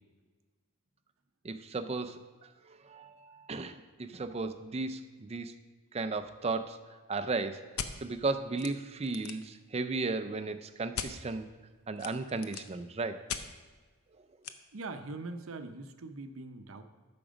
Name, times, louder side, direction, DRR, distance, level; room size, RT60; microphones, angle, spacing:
voice 1, 1.4-5.5 5.9-7.7 8.0-11.5 11.9-13.2, right 3 dB, 30° right, 9 dB, 0.4 m, -35 dB
sound 1, 7.8-7.9 8.6-8.7 9.0-9.5 10.9-11.1 12.0-12.7 13.3-13.4 14.4-14.5, left 7 dB, 85° left, 0.6 m, -37 dB
voice 2, 14.7-16.8, right 3 dB, 65° right, 8 dB, 0.7 m, -42 dB
8.8 x 6.0 x 5.1 m, 1.4 s
head